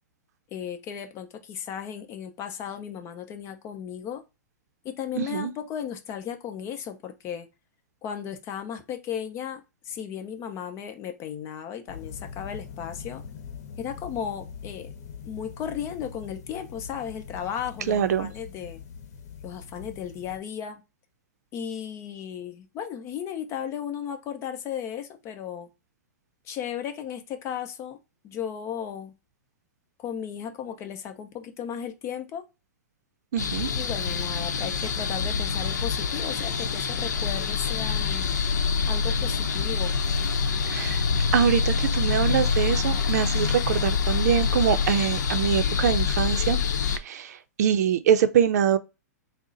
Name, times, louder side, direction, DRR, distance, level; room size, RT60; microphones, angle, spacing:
voice 1, 0.5-4.2 4.8-7.5 8.0-13.2 13.8-14.9 15.2-18.8 19.4-20.8 21.5-25.7 26.4-28.0 28.2-29.1 30.0-32.4 33.7-38.3 38.9-39.9, left 8 dB, 30° left, 0.7 m, -35 dB
voice 2, 5.2-5.5 17.9-18.3 33.3-33.7 40.7-41.0 41.3-46.6 47.0-48.8, right 9 dB, 65° right, 0.5 m, -24 dB
sound 1, 11.9-20.4, left 7 dB, 60° left, 0.9 m, -42 dB
sound 2, 33.4-47.0, left 5 dB, 85° left, 0.7 m, -26 dB
3.7 x 2.1 x 3.9 m
hypercardioid pair, 135°, 9 cm